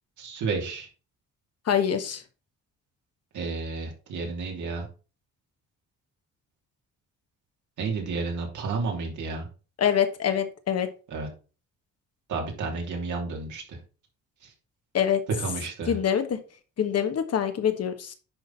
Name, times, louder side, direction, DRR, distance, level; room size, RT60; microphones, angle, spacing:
voice 1, 0.2-0.9 3.3-4.9 7.8-9.5 11.1-11.3 12.3-13.8 14.4-14.5 15.4-16.0, right 4 dB, 80° right, 0 dB, 3.0 m, -31 dB
voice 2, 1.7-2.2 9.8-10.9 14.9-15.2 15.9-16.4 16.8-18.1, left 8 dB, 55° left, 8 dB, 1.3 m, -25 dB
10.5 x 4.0 x 4.1 m, 0.34 s
cardioid pair, 90°, 30 cm